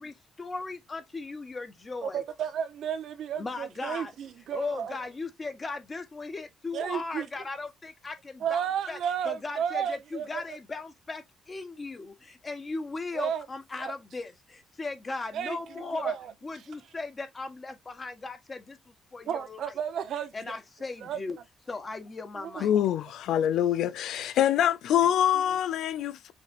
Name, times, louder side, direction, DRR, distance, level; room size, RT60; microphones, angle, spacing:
voice 1, 0.0-2.2 3.4-4.1 4.5-8.6 8.9-9.0 9.2-16.1 16.4-19.7 20.3-21.4 21.7-22.7, left 3 dB, 30° left, 1.3 m, -37 dB
voice 2, 2.0-5.0 6.7-7.3 8.4-10.6 13.1-13.4 13.8-13.9 15.3-15.6 15.9-16.3 19.3-20.6 21.0-21.2 22.4-22.7 25.0-25.1 25.3-25.6, right 8 dB, 70° right, 0.8 m, -33 dB
voice 3, 22.6-26.3, left 10 dB, 80° left, 0.3 m, -25 dB
5.8 x 3.2 x 2.5 m
cardioid pair, 90°, 0 cm